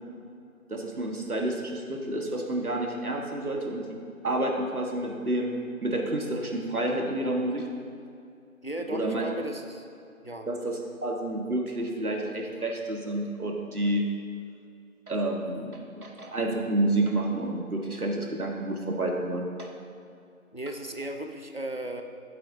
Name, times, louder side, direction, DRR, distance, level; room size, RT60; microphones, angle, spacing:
voice 1, 0.7-4.0 4.2-7.7 8.9-9.3 10.5-14.1 15.1-19.7, right 1 dB, 80° right, 1 dB, 1.6 m, -29 dB
voice 2, 8.6-9.9 10.2-10.5 20.5-22.0, right 1 dB, 45° left, 5 dB, 0.5 m, -35 dB
11.5 x 8.4 x 2.8 m, 2.6 s
figure-of-eight pair, 175°, 43 cm